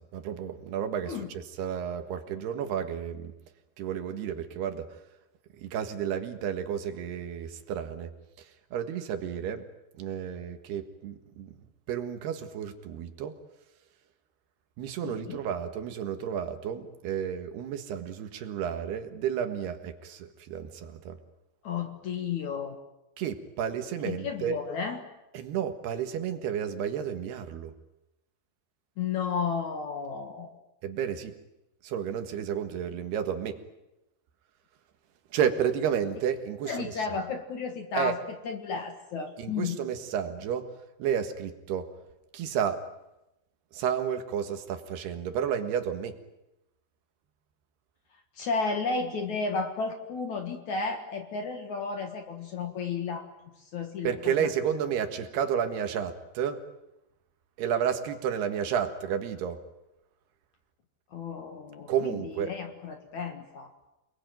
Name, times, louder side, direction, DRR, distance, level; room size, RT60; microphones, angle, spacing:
voice 1, 0.0-3.3 3.8-4.9 5.6-8.1 8.4-9.6 10.0-11.5 11.9-13.3 14.8-21.2 23.2-24.6 25.3-27.7 30.8-31.3 31.8-33.6 35.3-37.0 38.0-38.2 39.4-40.7 41.0-41.9 42.3-42.8 43.7-46.2 54.0-56.6 57.6-59.6 61.9-62.5, right 8 dB, 70° right, 8 dB, 3.5 m, -31 dB
voice 2, 15.0-15.4 21.6-22.8 24.0-25.0 29.0-30.5 36.7-39.8 48.4-53.3 53.7-54.3 61.1-63.7, left 5 dB, 55° left, 6 dB, 2.5 m, -33 dB
29.0 x 21.0 x 9.3 m, 0.92 s
omnidirectional pair, 5.0 m